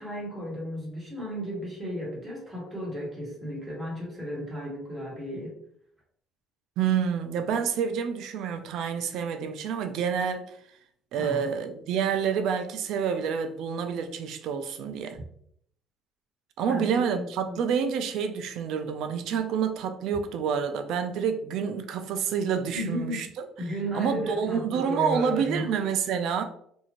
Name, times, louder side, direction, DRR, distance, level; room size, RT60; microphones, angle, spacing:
voice 1, 0.0-5.5 11.1-11.5 16.7-17.6 22.7-23.2 23.6-25.7, equal, 10° right, 1.2 m, -34 dB
voice 2, 6.8-10.6 11.1-15.2 16.6-23.4 23.9-26.4, right 7 dB, 65° right, 0.4 m, -28 dB
2.6 x 2.4 x 2.9 m
cardioid pair, 150°, 0 cm